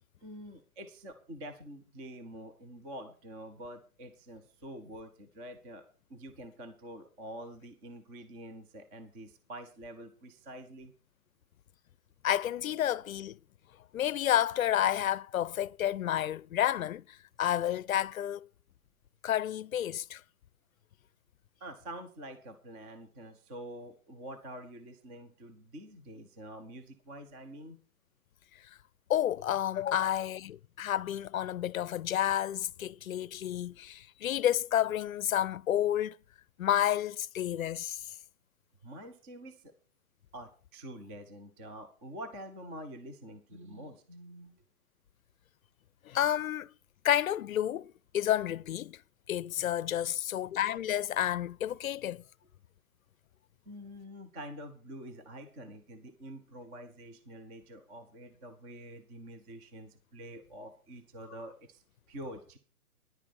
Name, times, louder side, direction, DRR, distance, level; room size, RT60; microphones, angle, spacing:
voice 1, 0.2-5.8 6.1-10.9 21.6-27.8 38.8-39.7 40.3-44.6 53.7-61.8 62.1-62.6, right 1 dB, 10° right, 0.4 m, -46 dB
voice 2, 12.2-13.4 13.9-17.0 17.4-18.5 19.2-20.2 29.1-36.1 36.6-38.0 46.1-46.7 47.0-49.0 49.3-52.2, left 11 dB, 65° left, 0.6 m, -30 dB
10.5 x 8.8 x 6.0 m
hypercardioid pair, 135°, 44 cm